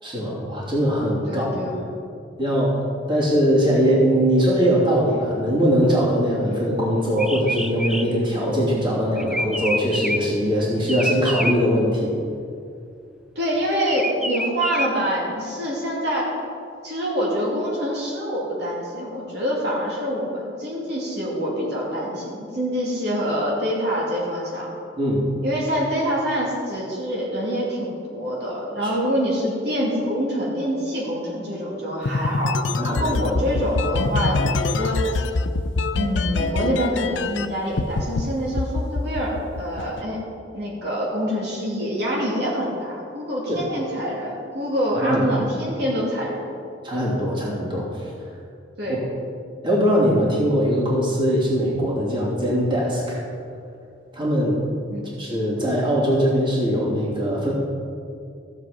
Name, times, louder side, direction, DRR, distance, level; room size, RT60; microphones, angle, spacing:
voice 1, 0.0-1.5 2.4-2.8 3.1-12.2 25.0-25.2 28.8-28.9 32.8-33.2 43.5-43.6 44.9-45.4 46.8-48.1 49.6-53.2 54.1-54.6 55.2-57.5, equal, 25° right, -6 dB, 2.9 m, -21 dB
voice 2, 1.3-1.8 13.4-16.4 16.8-24.7 25.4-32.6 33.0-35.2 35.9-40.2 40.5-46.5 48.8-49.0 54.9-55.1, equal, 60° right, -5 dB, 2.6 m, -26 dB
sound 1, 7.2-10.4 10.9-11.5 13.9-14.9, equal, 5° right, 0.4 m, -27 dB
sound 2, 32.0-37.5 37.8-38.2 38.6-40.0, left 3 dB, 85° left, 0.6 m, -24 dB
15.0 x 7.7 x 5.0 m, 2.5 s
head